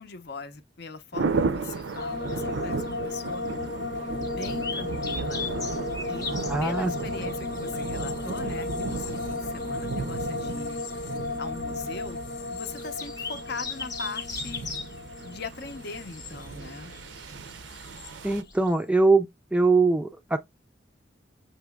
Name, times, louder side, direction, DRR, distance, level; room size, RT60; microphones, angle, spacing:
voice 1, 0.0-3.4 4.2-5.5 6.1-6.2 6.6-12.2 12.5-14.7 15.2-16.9, left 4 dB, 60° left, 0.7 m, -40 dB
sound 1, 1.1-18.4, right 4 dB, 75° right, 0.5 m, -35 dB
sound 2, 1.6-18.7, left 4 dB, 20° left, 0.7 m, -41 dB
sound 3, 2.0-17.2 17.5-18.1, left 3 dB, 80° left, 1.1 m, -35 dB
voice 2, 6.5-7.3 18.2-20.4, right 3 dB, 5° right, 0.3 m, -23 dB
6.0 x 2.9 x 2.2 m
head